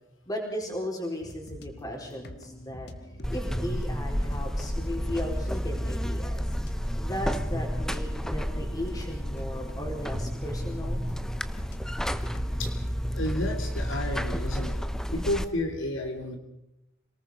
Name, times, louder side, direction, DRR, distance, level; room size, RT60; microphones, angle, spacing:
voice 1, 0.3-2.9 3.3-6.4 6.9-11.0, left 1 dB, 20° left, 1 dB, 4.4 m, -36 dB
sound 1, 1.2-12.9, equal, 55° left, 1.5 m, -44 dB
Buzz, 3.2-15.4, equal, 5° left, 0.7 m, -31 dB
voice 2, 13.1-14.8 15.1-16.4, left 1 dB, 75° left, 4 dB, 3.1 m, -31 dB
27.0 x 19.0 x 5.1 m, 0.86 s
head